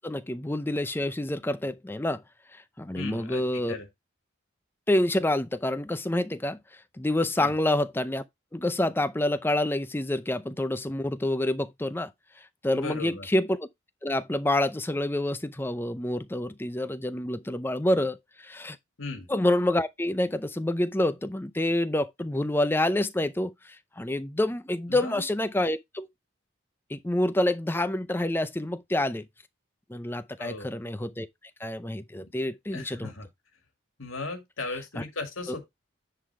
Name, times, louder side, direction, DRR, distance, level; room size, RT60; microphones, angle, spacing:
voice 1, 0.0-2.2 2.5-3.8 4.9-6.6 7.0-8.2 8.5-12.1 12.6-13.6 14.0-18.8 19.3-26.1 26.9-29.3 29.9-31.3 31.6-33.1 35.0-35.1 35.5-35.6, left 1 dB, 10° left, 0.5 m, -27 dB
voice 2, 2.9-3.9 7.4-7.6 12.7-13.3 19.0-19.3 24.9-25.2 30.4-30.7 32.2-32.3 32.7-33.3 34.0-35.7, left 3 dB, 85° left, 2.0 m, -37 dB
10.0 x 3.9 x 4.5 m
head